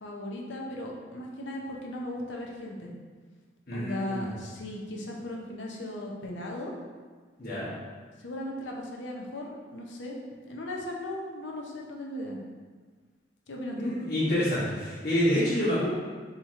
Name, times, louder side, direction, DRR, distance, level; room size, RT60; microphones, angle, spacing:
voice 1, 0.0-2.9 3.7-6.7 8.2-10.2 10.4-12.4 13.5-13.9, left 1 dB, 80° left, -1 dB, 0.7 m, -37 dB
voice 2, 3.7-4.3 7.4-7.7 13.8-15.9, equal, 55° left, -12 dB, 1.2 m, -27 dB
4.4 x 2.9 x 3.7 m, 1.5 s
head